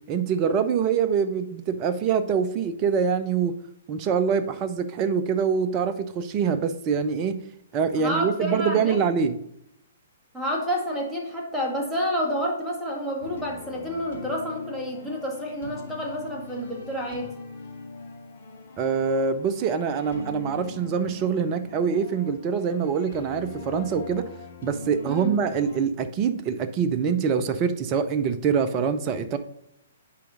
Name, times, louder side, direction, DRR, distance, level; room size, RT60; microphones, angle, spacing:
voice 1, 0.1-3.5 3.9-7.4 7.7-9.4 18.8-24.3 24.6-29.4, right 6 dB, 30° right, 10 dB, 0.6 m, -24 dB
voice 2, 8.0-9.0 10.3-17.3 25.1-25.3, equal, 5° right, -3 dB, 1.8 m, -29 dB
sound 1, 13.2-25.8, left 3 dB, 55° left, 1.7 m, -41 dB
8.5 x 5.0 x 3.8 m, 0.77 s
figure-of-eight pair, 120°, 0 cm